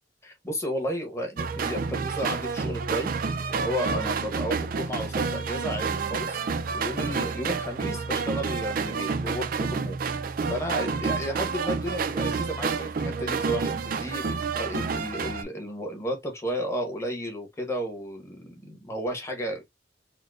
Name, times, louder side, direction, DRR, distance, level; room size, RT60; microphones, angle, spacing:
voice 1, 0.2-3.1 3.5-6.4 6.7-10.0 10.5-19.6, equal, 15° left, 1.0 m, -33 dB
sound 1, 1.4-15.4, right 5 dB, 50° right, 0.4 m, -29 dB
4.3 x 2.1 x 2.4 m
head